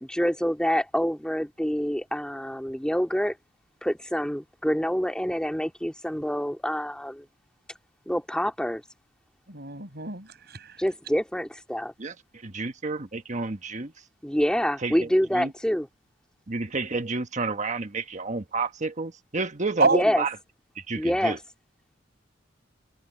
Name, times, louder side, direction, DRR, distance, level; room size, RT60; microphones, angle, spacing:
voice 1, 0.0-3.4 3.8-7.2 8.1-8.8 10.8-11.9 14.2-15.9 19.9-20.2 21.0-21.4, equal, 5° left, 2.2 m, -26 dB
voice 2, 9.5-10.8 19.8-20.0, right 3 dB, 60° right, 7.4 m, -26 dB
voice 3, 12.4-13.9 14.8-15.5 16.5-20.3 20.8-21.4, right 3 dB, 40° right, 1.3 m, -30 dB
open air
head